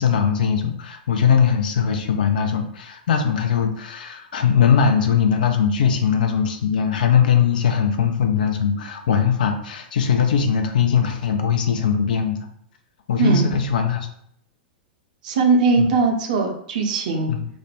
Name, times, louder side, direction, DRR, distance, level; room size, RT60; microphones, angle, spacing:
voice 1, 0.0-12.5 13.1-14.1 15.8-15.9 17.3-17.5, left 7 dB, 55° left, 5 dB, 0.4 m, -20 dB
voice 2, 13.2-13.5 15.2-17.3, right 4 dB, 50° right, 3 dB, 0.5 m, -19 dB
2.4 x 2.1 x 3.3 m, 0.70 s
figure-of-eight pair, 100°, 5 cm